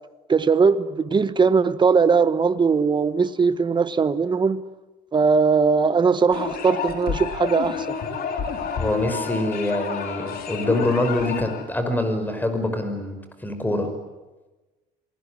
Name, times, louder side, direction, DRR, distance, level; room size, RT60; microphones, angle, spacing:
voice 1, 0.3-4.6 5.1-8.0, right 5 dB, 25° right, 1.3 m, -20 dB
Effected vocal, 6.3-11.6, left 6 dB, 65° left, 4.3 m, -29 dB
voice 2, 8.8-13.9, left 1 dB, 10° left, 5.6 m, -25 dB
27.0 x 20.5 x 9.9 m
cardioid pair, 110°, 17 cm